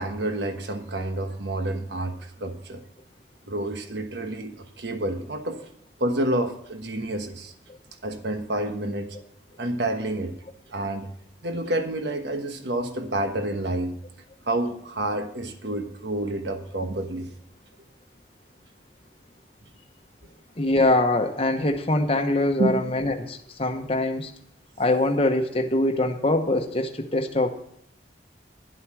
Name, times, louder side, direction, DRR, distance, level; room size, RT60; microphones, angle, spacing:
voice 1, 0.0-2.8 3.5-5.6 6.0-7.5 8.0-9.2 9.6-10.4 10.7-11.1 11.4-14.0 14.5-17.3 22.6-22.9, right 1 dB, 70° right, 6 dB, 1.2 m, -29 dB
voice 2, 20.6-24.3 24.8-27.6, left 2 dB, 30° left, 3 dB, 1.0 m, -23 dB
11.5 x 8.0 x 6.1 m, 0.70 s
head